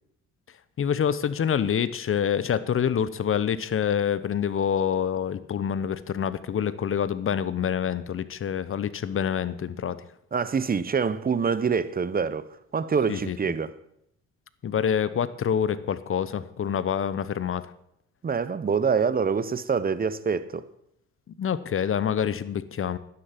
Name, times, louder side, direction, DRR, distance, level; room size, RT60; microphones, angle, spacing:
voice 1, 0.8-10.0 13.1-13.5 14.6-17.6 21.4-23.0, left 8 dB, 45° left, 0.9 m, -26 dB
voice 2, 10.3-13.8 18.2-20.7, right 6 dB, 30° right, 0.9 m, -26 dB
11.5 x 9.8 x 5.9 m
cardioid pair, 90°, 30 cm